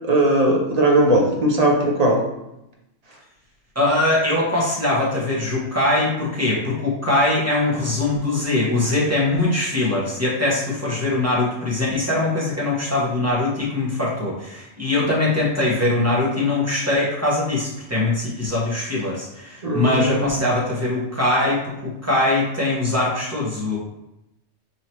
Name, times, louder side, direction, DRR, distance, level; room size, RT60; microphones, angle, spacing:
voice 1, 0.1-2.2 19.6-20.3, right 1 dB, 35° right, -1 dB, 0.8 m, -18 dB
voice 2, 3.7-23.8, left 2 dB, 15° right, -6 dB, 1.1 m, -22 dB
4.9 x 2.8 x 3.0 m, 0.90 s
omnidirectional pair, 1.3 m